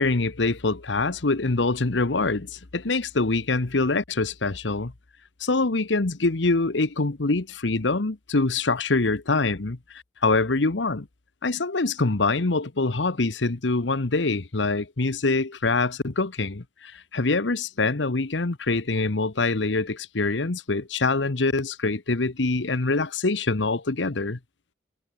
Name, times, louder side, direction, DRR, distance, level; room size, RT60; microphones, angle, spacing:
voice 1, 0.0-4.9 5.4-11.1 11.4-24.4, left 3 dB, 85° left, 1.2 m, -24 dB
head